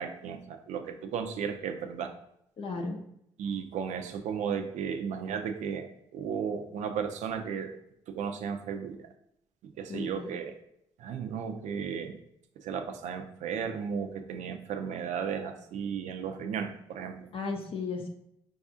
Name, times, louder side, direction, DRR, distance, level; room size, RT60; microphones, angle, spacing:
voice 1, 0.0-2.1 3.4-5.9 6.1-7.8 8.1-9.1 9.6-10.6 11.0-12.2 12.6-17.3, right 7 dB, 65° right, 7 dB, 0.4 m, -34 dB
voice 2, 2.6-3.0 9.9-10.3 17.3-18.1, left 4 dB, 45° left, 2 dB, 0.5 m, -35 dB
4.7 x 2.4 x 2.6 m, 0.75 s
hypercardioid pair, 45°, 13 cm